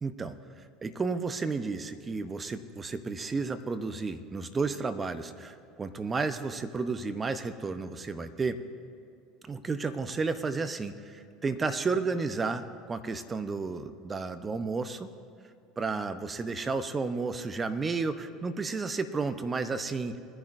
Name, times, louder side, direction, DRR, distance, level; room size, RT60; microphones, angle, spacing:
voice 1, 0.0-0.4 0.8-8.6 9.5-15.1 15.8-20.2, right 4 dB, 25° right, 10 dB, 0.8 m, -32 dB
21.0 x 10.5 x 2.6 m, 2.4 s
hypercardioid pair, 75°, 0 cm